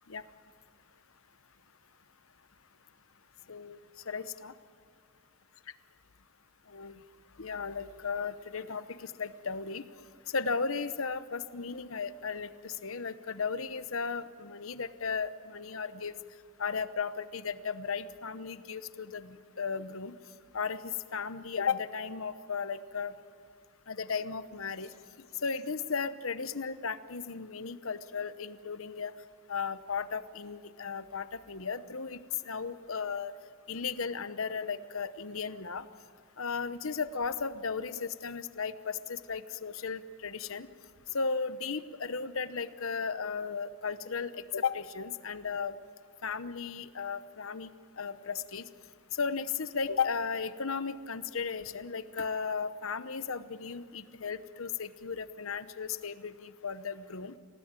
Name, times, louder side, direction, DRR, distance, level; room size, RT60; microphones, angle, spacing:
voice 1, 3.5-3.8 4.1-4.5 6.7-6.9 7.4-9.9 10.3-16.1 16.6-20.1 20.5-23.1 23.9-24.9 25.4-29.1 29.5-32.2 32.4-33.3 33.7-35.8 36.4-40.7 41.1-45.7 46.2-47.7 48.0-48.6 49.1-57.3, left 5 dB, 65° left, 13 dB, 0.9 m, -35 dB
27.0 x 18.0 x 9.0 m, 2.4 s
head